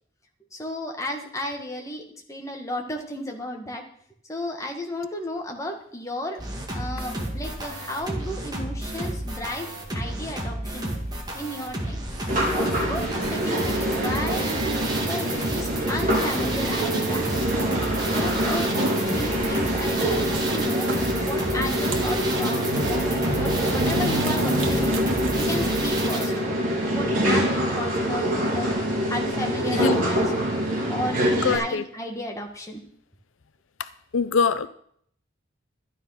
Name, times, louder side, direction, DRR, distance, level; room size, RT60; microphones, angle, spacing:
voice 1, 0.5-3.8 4.3-6.4 6.7-10.9 11.3-12.0 12.5-17.2 18.0-25.0 25.3-26.3 26.9-28.7 29.1-30.3 30.9-32.8, left 1 dB, 15° left, 2 dB, 1.6 m, -33 dB
sound 1, 6.4-26.3, right 1 dB, 20° right, 2.0 m, -32 dB
sound 2, 12.3-31.6, equal, 40° right, 3.4 m, -25 dB
sound 3, 19.5-26.0, right 3 dB, 85° right, 1.7 m, -39 dB
voice 2, 29.7-30.1 31.4-31.9 33.8-33.9 34.1-34.7, left 5 dB, 80° left, 13 dB, 0.6 m, -23 dB
12.5 x 9.4 x 5.8 m, 0.64 s
head